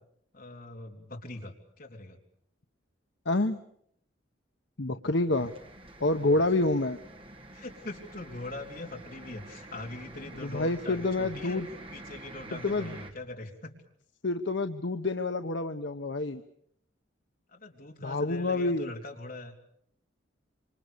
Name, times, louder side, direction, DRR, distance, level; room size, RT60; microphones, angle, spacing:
voice 1, 0.3-2.2 6.2-6.4 7.5-11.6 11.9-13.7 17.5-19.6, left 2 dB, 50° left, 2 dB, 3.5 m, -42 dB
voice 2, 3.2-3.6 4.8-5.5 6.0-7.0 10.4-11.7 12.5-13.0 14.2-16.4 18.0-18.9, left 2 dB, 65° left, 7 dB, 1.1 m, -28 dB
sound 1, 5.3-13.1, right 1 dB, 30° right, 2.6 m, -47 dB
26.5 x 25.5 x 6.8 m, 0.69 s
head